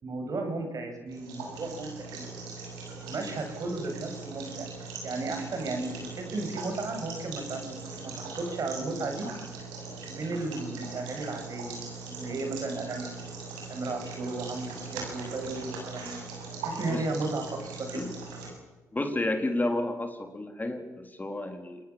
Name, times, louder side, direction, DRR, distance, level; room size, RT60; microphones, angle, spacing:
voice 1, 0.0-2.3 2.6-2.7 2.9-9.3 10.1-11.8 12.1-13.1 13.7-16.2 16.6-18.1, right 3 dB, 50° right, 5 dB, 7.3 m, -35 dB
sound 1, 1.1-18.5, right 4 dB, 75° right, 7.5 m, -40 dB
voice 2, 18.9-21.9, left 1 dB, 20° left, 6 dB, 3.8 m, -31 dB
27.5 x 21.0 x 7.3 m, 1.2 s
hypercardioid pair, 45°, 8 cm